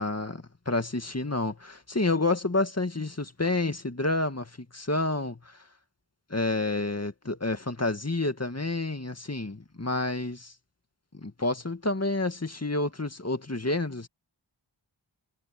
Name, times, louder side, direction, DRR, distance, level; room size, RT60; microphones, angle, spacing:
voice 1, 0.0-5.6 6.3-10.5 11.1-14.1, left 2 dB, 30° left, 2.1 m, -29 dB
wide cardioid pair, 50°, 47 cm